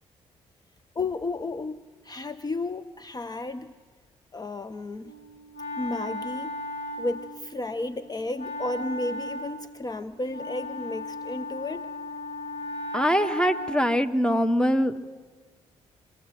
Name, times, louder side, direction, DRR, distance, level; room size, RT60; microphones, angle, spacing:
voice 1, 1.0-3.7 4.3-5.1 5.8-6.6 7.0-11.9, left 2 dB, 25° left, 11 dB, 0.8 m, -33 dB
Wind instrument woodwind instrument, 5.0-14.1, left 1 dB, 80° left, 1.9 m, -36 dB
voice 2, 12.9-15.1, equal, 5° left, 9 dB, 1.2 m, -23 dB
24.0 x 14.5 x 8.2 m, 1.5 s
hypercardioid pair, 40°, 16 cm